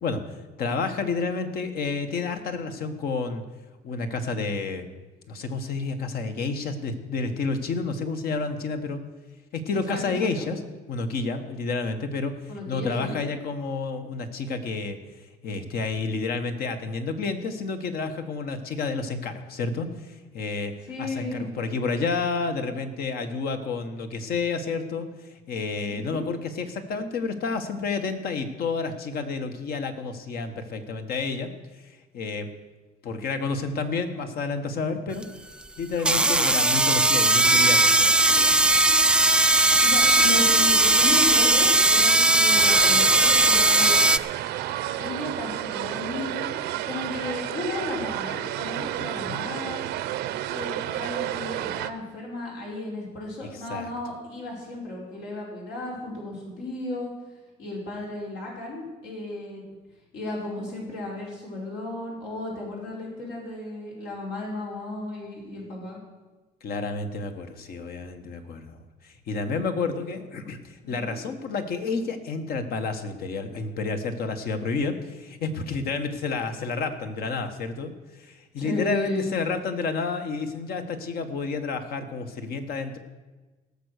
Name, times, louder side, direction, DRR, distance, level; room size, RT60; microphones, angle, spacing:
voice 1, 0.0-3.4 3.8-4.9 5.3-9.0 9.5-10.6 10.9-20.7 21.0-31.5 31.8-32.5 33.0-35.2 35.8-38.6 49.3-49.4 53.5-53.9 66.6-68.8 69.0-83.0, left 4 dB, 65° left, 7 dB, 1.5 m, -30 dB
voice 2, 9.9-10.5 12.5-13.1 20.9-21.5 25.8-26.3 39.8-43.9 45.0-46.5 46.8-49.8 50.5-57.1 57.6-59.6 60.1-66.0 70.8-71.1 78.6-79.3, left 2 dB, 80° left, -3 dB, 5.1 m, -34 dB
sound 1, 35.2-35.3 36.0-44.2, right 2 dB, 5° right, 0.3 m, -18 dB
sound 2, 42.5-51.9, right 13 dB, 90° right, 0.7 m, -31 dB
17.5 x 6.8 x 6.6 m, 1.2 s
cardioid pair, 110°, 17 cm